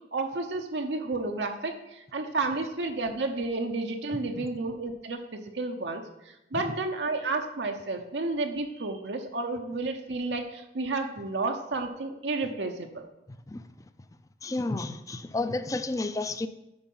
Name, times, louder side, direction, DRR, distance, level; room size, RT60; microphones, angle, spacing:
voice 1, 0.1-13.1, right 3 dB, 80° right, 4 dB, 0.8 m, -31 dB
voice 2, 14.4-16.5, left 2 dB, 20° left, 11 dB, 0.4 m, -31 dB
8.8 x 5.0 x 5.5 m, 0.91 s
head